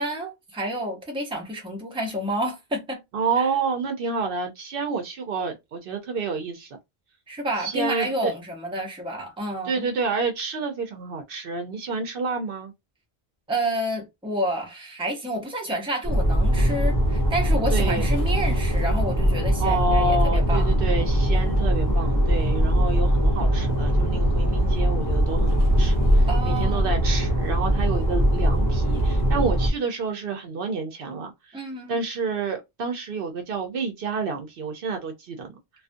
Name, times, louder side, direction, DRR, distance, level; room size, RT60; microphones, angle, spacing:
voice 1, 0.0-3.0 3.4-3.5 7.3-9.9 13.5-20.8 26.3-26.9 31.5-32.0, right 1 dB, 5° right, 0.6 m, -29 dB
voice 2, 3.1-6.8 7.6-8.3 9.6-12.7 17.7-18.1 19.6-31.6 31.9-35.5, right 4 dB, 65° right, 0.7 m, -29 dB
sound 1, 16.0-29.7, right 1 dB, 20° left, 0.9 m, -21 dB
2.4 x 2.3 x 2.5 m
omnidirectional pair, 1.1 m